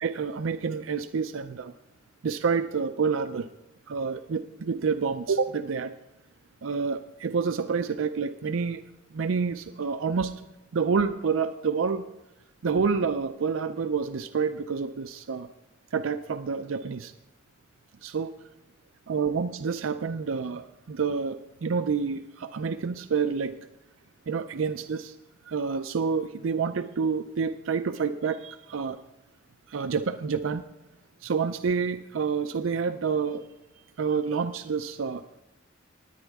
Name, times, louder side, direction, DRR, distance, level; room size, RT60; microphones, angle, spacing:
voice 1, 0.0-1.7 2.2-3.5 3.9-6.0 6.6-8.8 9.1-10.3 10.7-12.0 12.6-15.5 15.9-17.1 18.0-18.3 19.1-23.6 24.3-25.1 25.5-29.0 29.7-30.6 31.2-33.4 34.0-35.2, right 5 dB, 85° right, 10 dB, 0.5 m, -28 dB
19.0 x 9.1 x 3.5 m, 1.0 s
head